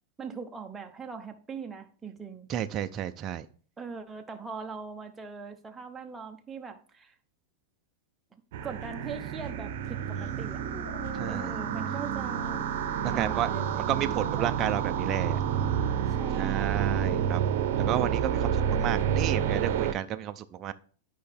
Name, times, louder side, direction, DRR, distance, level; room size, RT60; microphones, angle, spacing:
voice 1, 0.2-2.5 3.8-7.1 8.6-10.6 11.3-12.6 13.1-14.6 16.2-17.1, right 5 dB, 10° right, 0.8 m, -41 dB
voice 2, 2.5-3.5 10.2-10.3 11.1-11.5 13.0-15.4 16.3-20.7, right 10 dB, 25° right, 0.4 m, -32 dB
sound 1, 8.5-19.9, right 8 dB, 60° right, 0.7 m, -29 dB
Dog, 10.4-17.1, left 5 dB, 45° left, 1.4 m, -48 dB
10.0 x 5.5 x 3.4 m
supercardioid pair, 150°, 0 cm